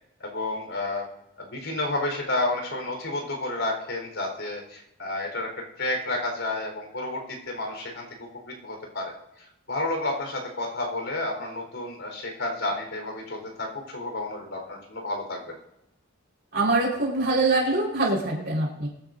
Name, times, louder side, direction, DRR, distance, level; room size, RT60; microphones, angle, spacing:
voice 1, 0.2-1.1 1.4-5.5 5.8-7.2 7.5-8.1 8.4-9.1 9.7-15.4, left 2 dB, 60° left, 1 dB, 4.3 m, -30 dB
voice 2, 16.5-18.9, right 2 dB, 50° right, -4 dB, 4.5 m, -24 dB
23.0 x 10.5 x 2.7 m, 0.84 s
head